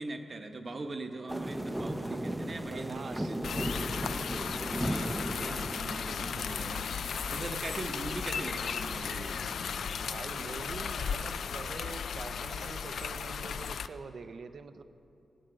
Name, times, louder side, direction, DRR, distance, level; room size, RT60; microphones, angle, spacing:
voice 1, 0.0-4.0 4.6-6.9 7.3-9.3, right 2 dB, 40° right, 6 dB, 0.9 m, -41 dB
sound 1, 1.3-11.7, right 1 dB, 5° right, 0.6 m, -38 dB
voice 2, 2.7-3.4 10.1-14.8, right 4 dB, 60° right, 10 dB, 0.6 m, -44 dB
sound 2, 3.4-13.9, left 6 dB, 80° left, 0.3 m, -36 dB
16.0 x 8.8 x 5.0 m, 2.9 s
wide cardioid pair, 120°, 0 cm